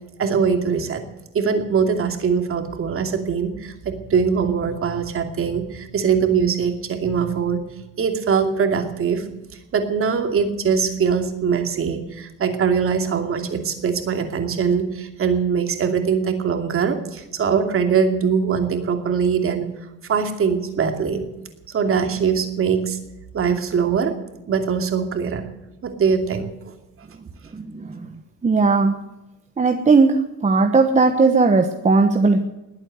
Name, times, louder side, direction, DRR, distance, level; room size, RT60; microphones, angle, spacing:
voice 1, 0.2-1.0 1.3-7.6 8.0-9.2 9.7-19.7 20.1-21.2 21.7-23.0 23.3-24.1 24.5-25.4 25.8-26.5, right 6 dB, 45° right, 6 dB, 2.6 m, -22 dB
voice 2, 27.5-29.0 29.6-32.4, right 4 dB, 25° right, 5 dB, 1.2 m, -18 dB
20.5 x 8.8 x 7.8 m, 0.98 s
cardioid pair, 135°, 31 cm